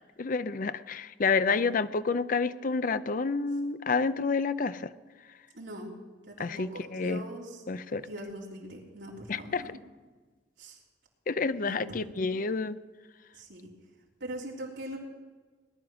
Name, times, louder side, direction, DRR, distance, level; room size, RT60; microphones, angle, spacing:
voice 1, 0.2-4.9 6.4-7.2 7.7-8.0 9.3-9.6 11.3-12.8, left 4 dB, 50° left, 14 dB, 0.5 m, -29 dB
voice 2, 5.5-5.9 6.3-7.6 8.0-9.7 10.6-10.8 11.6-12.4 13.3-13.7 14.2-15.0, right 1 dB, 75° right, -2 dB, 3.4 m, -42 dB
19.0 x 11.0 x 6.2 m, 1.4 s
head